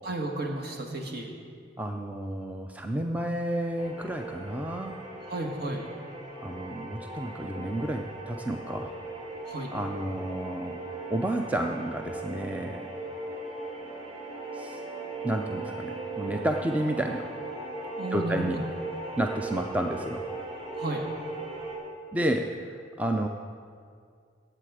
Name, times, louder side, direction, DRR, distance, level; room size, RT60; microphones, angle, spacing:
voice 1, 0.0-1.3 5.3-5.8 9.5-9.7 18.0-18.5 20.8-21.0, right 2 dB, 55° right, 1 dB, 1.6 m, -33 dB
voice 2, 1.8-5.0 6.4-8.9 9.7-10.8 11.1-12.8 14.5-14.8 15.2-17.3 18.1-18.6 19.2-20.2 22.1-23.3, right 1 dB, 10° right, 3 dB, 0.4 m, -31 dB
sound 1, 3.8-21.7, right 2 dB, 30° right, 3.3 m, -38 dB
18.0 x 7.8 x 4.9 m, 2.2 s
head